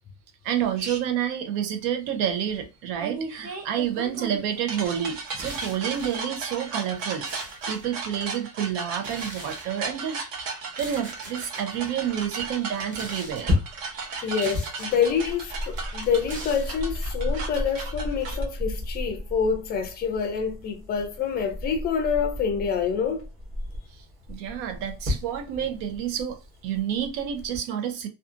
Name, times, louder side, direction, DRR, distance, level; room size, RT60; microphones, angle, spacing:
voice 1, 0.4-10.2 10.8-13.5 24.3-28.1, right 9 dB, 90° right, 0.7 m, -29 dB
sound 1, 0.8-1.0 3.0-18.4, right 4 dB, 60° right, 0.9 m, -36 dB
sound 2, 5.3-6.2 6.8-7.9 9.0-9.7 10.6-11.7 12.7-13.4 14.2-15.0 15.8-16.8, right 1 dB, 20° right, 0.5 m, -42 dB
sound 3, 11.6-27.6, left 2 dB, 35° right, 1.2 m, -34 dB
voice 2, 14.2-23.3, left 6 dB, 25° left, 0.4 m, -27 dB
2.6 x 2.3 x 2.4 m
cardioid pair, 175°, 38 cm